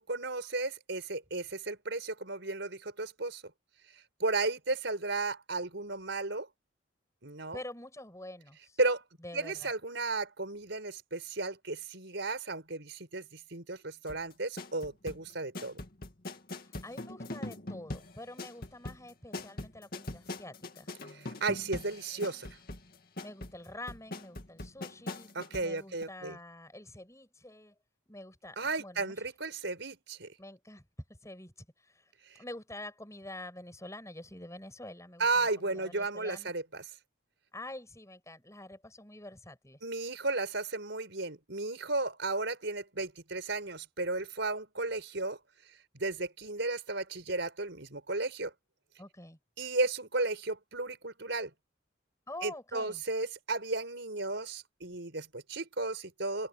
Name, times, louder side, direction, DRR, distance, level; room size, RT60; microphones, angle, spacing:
voice 1, 0.1-3.4 4.2-6.5 7.2-7.6 8.8-9.0 9.3-15.8 21.1-22.5 25.4-26.4 28.6-30.3 32.3-32.4 35.2-36.8 39.8-45.4 45.9-48.5 49.6-51.5 52.4-56.5, right 3 dB, 65° right, 5.3 m, -34 dB
voice 2, 7.5-8.8 9.2-9.7 16.6-20.9 23.2-25.3 25.6-27.7 28.1-29.1 30.4-32.1 32.4-36.5 37.5-39.8 49.0-49.4 52.3-53.0, left 1 dB, 15° left, 7.4 m, -47 dB
sound 1, 14.1-25.7 26.0-26.1, left 2 dB, 50° left, 2.3 m, -42 dB
open air
head